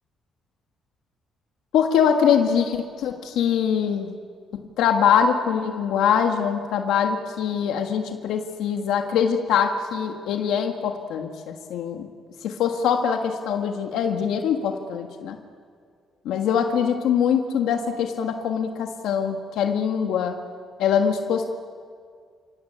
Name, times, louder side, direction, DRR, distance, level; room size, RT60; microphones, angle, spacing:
voice 1, 1.7-4.1 4.8-12.1 12.4-15.4 16.3-20.3 20.8-21.4, left 7 dB, 85° left, 4 dB, 1.6 m, -23 dB
28.5 x 15.5 x 8.7 m, 2.1 s
cardioid pair, 90°, 0 cm